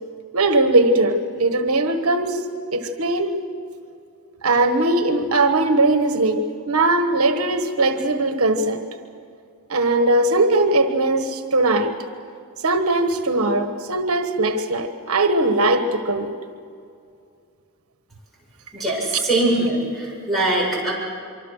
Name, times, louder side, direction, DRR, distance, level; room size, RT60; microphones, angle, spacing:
voice 1, 0.3-2.4 2.7-3.3 4.4-8.8 9.7-11.9 12.6-16.3, right 2 dB, 80° right, 8 dB, 1.3 m, -20 dB
voice 2, 18.7-20.9, right 2 dB, ahead, -4 dB, 7.4 m, -22 dB
25.0 x 24.5 x 6.5 m, 2.4 s
head